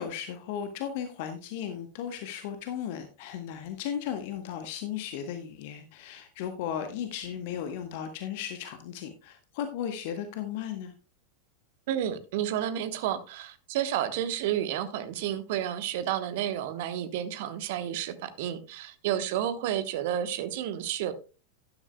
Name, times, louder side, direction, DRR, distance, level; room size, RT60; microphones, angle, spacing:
voice 1, 0.0-10.9, left 9 dB, 50° left, 1.0 m, -36 dB
voice 2, 11.9-21.1, right 11 dB, 50° right, 1.1 m, -31 dB
12.5 x 11.0 x 2.2 m
figure-of-eight pair, 90°, 0 cm